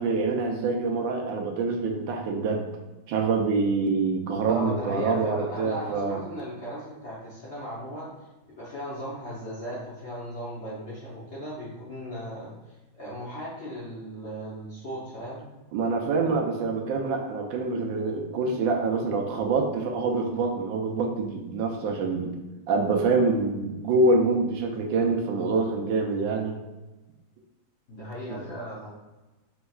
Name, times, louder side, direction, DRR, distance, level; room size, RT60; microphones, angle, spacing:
voice 1, 0.0-2.7 3.1-6.2 15.7-22.4 22.7-26.6 28.3-28.5, right 3 dB, 80° right, 2 dB, 1.3 m, -26 dB
voice 2, 4.5-8.1 8.6-12.5 13.0-15.5 27.9-28.9, equal, 50° left, -8 dB, 0.8 m, -36 dB
4.3 x 4.0 x 2.3 m, 1.1 s
omnidirectional pair, 2.1 m